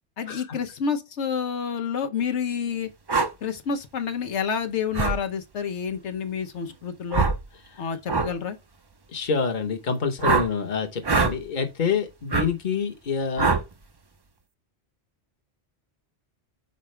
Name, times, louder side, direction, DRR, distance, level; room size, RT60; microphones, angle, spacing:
voice 1, 0.2-2.9 3.4-7.2 7.8-8.6, left 6 dB, 85° left, 1.2 m, -29 dB
sound 1, 3.1-3.3 4.9-5.2 7.1-7.4 8.1-8.3 10.2-10.5 11.0-11.4 12.3-12.5 13.4-13.7, right 4 dB, 30° right, 0.5 m, -22 dB
voice 2, 9.1-13.6, left 5 dB, 45° left, 1.1 m, -27 dB
6.6 x 4.9 x 3.2 m
omnidirectional pair, 1.2 m